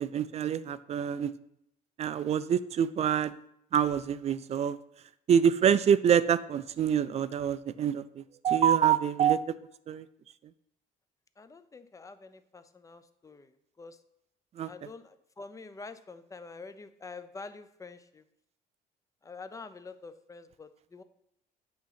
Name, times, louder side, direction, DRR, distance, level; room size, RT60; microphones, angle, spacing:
voice 1, 0.0-1.3 2.0-3.3 3.7-4.8 5.3-9.4 9.9-10.0 14.6-14.7, right 8 dB, 40° right, 15 dB, 0.4 m, -26 dB
voice 2, 11.4-13.5 13.8-14.0 14.6-18.2 19.2-21.0, left 4 dB, 20° left, 11 dB, 0.5 m, -46 dB
8.6 x 2.9 x 5.7 m, 0.76 s
cardioid pair, 110°, 17 cm